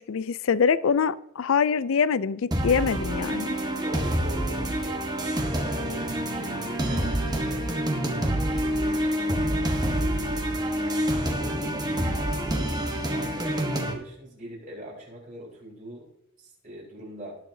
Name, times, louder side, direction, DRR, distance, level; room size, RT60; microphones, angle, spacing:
voice 1, 0.0-3.5, left 6 dB, 75° left, 0.4 m, -24 dB
sound 1, 2.5-13.9, right 1 dB, 20° right, 1.2 m, -27 dB
voice 2, 3.7-7.7 8.2-12.7 13.0-16.1 16.4-17.4, equal, 35° right, 4.4 m, -42 dB
18.5 x 6.6 x 2.8 m
head